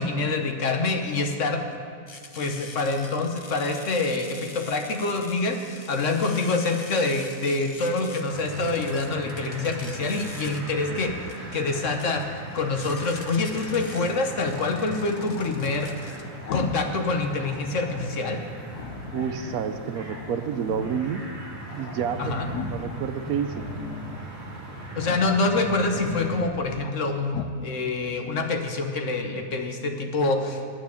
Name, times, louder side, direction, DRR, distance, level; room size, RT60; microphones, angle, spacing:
voice 1, 0.0-1.6 2.3-12.2 12.5-16.1 16.5-18.4 22.2-22.5 25.0-30.7, left 3 dB, 55° left, 4 dB, 1.2 m, -26 dB
sound 1, 2.1-16.2, left 3 dB, 35° left, 0.4 m, -45 dB
sound 2, 8.3-26.4, right 2 dB, 40° right, 2.3 m, -39 dB
Growling, 10.8-12.8 15.2-16.9 17.2-18.1 18.7-19.6 20.1-21.1 21.4-21.5 21.7-23.0 23.5-24.3 25.0-25.4 25.8-27.0 27.3-27.6, left 7 dB, 80° left, 1.2 m, -38 dB
voice 2, 19.1-21.2 21.8-23.7, right 7 dB, 70° right, 9 dB, 1.0 m, -29 dB
9.5 x 9.0 x 8.3 m, 2.3 s
omnidirectional pair, 1.7 m